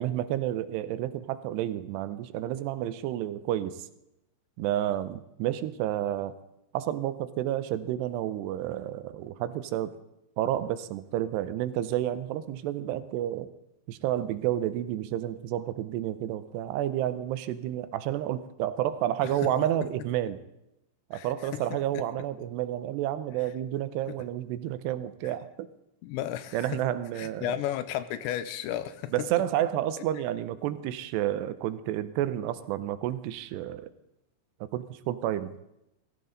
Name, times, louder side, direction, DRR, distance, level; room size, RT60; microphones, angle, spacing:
voice 1, 0.0-3.8 4.6-6.3 6.7-9.9 10.4-13.5 13.9-20.4 21.1-25.7 26.5-27.5 29.1-33.9 34.7-35.5, right 12 dB, 80° right, 13 dB, 2.7 m, -30 dB
voice 2, 21.1-22.0 24.1-24.2 25.2-25.3 26.0-26.8 27.2-29.3, left 12 dB, 90° left, 13 dB, 3.0 m, -34 dB
18.0 x 15.5 x 4.0 m, 0.85 s
omnidirectional pair, 5.2 m